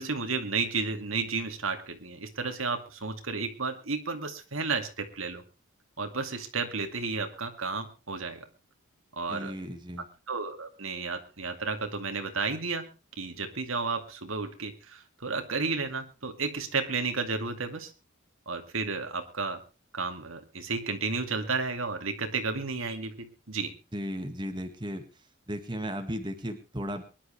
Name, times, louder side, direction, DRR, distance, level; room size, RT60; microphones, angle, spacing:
voice 1, 0.0-5.4 6.0-8.5 9.1-9.5 10.3-12.9 13.2-17.9 18.5-19.6 19.9-23.7, right 4 dB, 75° right, 7 dB, 2.3 m, -32 dB
voice 2, 9.3-10.1 23.9-25.0 25.5-27.0, equal, 20° right, 5 dB, 1.9 m, -35 dB
23.5 x 11.5 x 3.3 m, 0.31 s
head